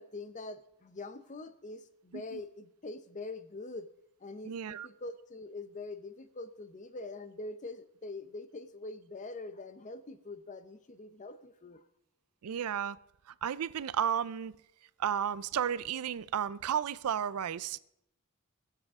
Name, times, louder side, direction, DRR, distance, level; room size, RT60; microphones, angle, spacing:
voice 1, 0.0-3.9 4.2-11.8, left 2 dB, 35° left, 0.7 m, -44 dB
voice 2, 4.5-4.9 12.4-13.0 13.3-14.5 15.0-17.8, right 8 dB, 80° right, 0.4 m, -33 dB
22.5 x 7.6 x 3.6 m
head